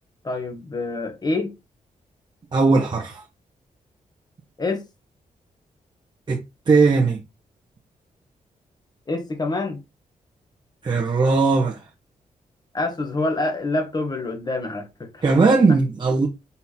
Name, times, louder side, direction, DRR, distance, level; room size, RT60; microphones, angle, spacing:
voice 1, 0.2-1.5 4.6-4.8 9.1-9.8 12.7-15.2, left 2 dB, 30° left, 1.9 m, -26 dB
voice 2, 2.5-3.2 6.3-7.2 10.8-11.9 15.2-16.3, right 4 dB, 35° right, 1.3 m, -18 dB
5.6 x 3.9 x 4.4 m
cardioid pair, 110°, 14 cm